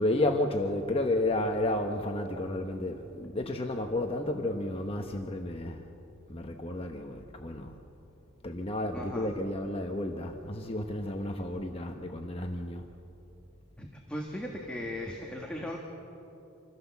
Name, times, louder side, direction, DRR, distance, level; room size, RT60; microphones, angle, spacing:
voice 1, 0.0-5.9 6.3-7.8 8.4-12.8, left 1 dB, 30° left, 3 dB, 1.0 m, -32 dB
voice 2, 8.9-9.3 13.8-15.8, left 1 dB, 5° left, -1 dB, 1.6 m, -38 dB
26.5 x 16.0 x 7.1 m, 3.0 s
head